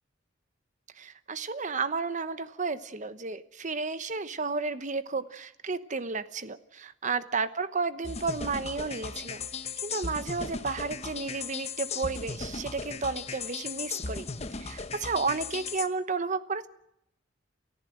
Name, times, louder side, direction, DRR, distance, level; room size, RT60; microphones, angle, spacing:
voice 1, 1.0-9.5 9.8-14.3 14.6-16.7, right 4 dB, 40° right, 13 dB, 1.0 m, -32 dB
sound 1, 8.0-15.9, left 4 dB, 35° left, 1.1 m, -37 dB
29.0 x 14.5 x 7.8 m, 0.81 s
head